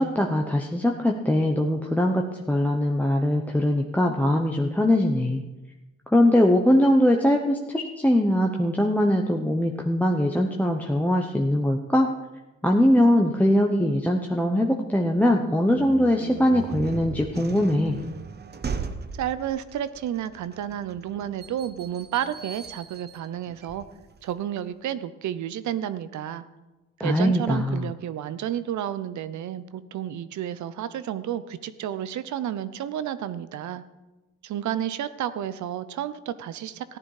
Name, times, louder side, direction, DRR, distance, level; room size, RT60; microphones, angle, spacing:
voice 1, 0.0-2.2 2.5-5.4 6.1-12.1 12.6-18.0 27.0-27.9, left 1 dB, 5° left, 1 dB, 1.0 m, -21 dB
sound 1, 15.7-24.4, right 5 dB, 35° right, 0.9 m, -38 dB
voice 2, 19.1-23.8 24.2-26.4 27.0-33.8 34.4-37.0, right 10 dB, 70° right, 14 dB, 0.8 m, -31 dB
14.5 x 10.0 x 4.9 m, 1.1 s
cardioid pair, 90°, 30 cm